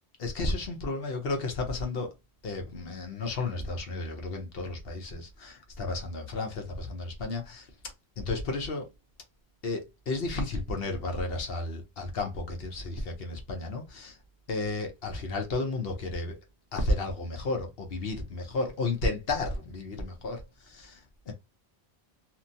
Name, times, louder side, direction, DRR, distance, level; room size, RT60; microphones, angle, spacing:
voice 1, 0.2-2.1 2.4-7.7 8.2-8.9 9.6-14.2 14.5-16.4 16.7-21.3, left 2 dB, 70° left, 0.9 m, -33 dB
2.8 x 2.2 x 2.6 m
omnidirectional pair, 1.1 m